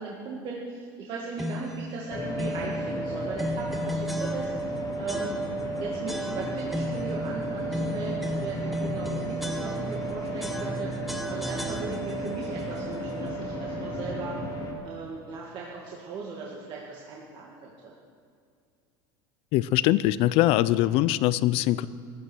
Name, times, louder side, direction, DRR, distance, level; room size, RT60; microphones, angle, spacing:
voice 1, 0.0-5.4 5.7-10.9 11.3-14.4 14.8-17.9, right 4 dB, 40° right, -4 dB, 2.1 m, -38 dB
sound 1, 1.4-1.8 2.4-2.7 3.4-4.7 5.1-5.7 6.1-7.1 7.7-10.1 10.4-12.3, left 1 dB, ahead, 1.1 m, -35 dB
sound 2, 2.1-14.7, right 1 dB, 30° left, 2.6 m, -33 dB
voice 2, 19.5-21.9, left 15 dB, 55° left, 17 dB, 0.5 m, -22 dB
15.5 x 11.5 x 6.2 m, 2.2 s
supercardioid pair, 130°, 12 cm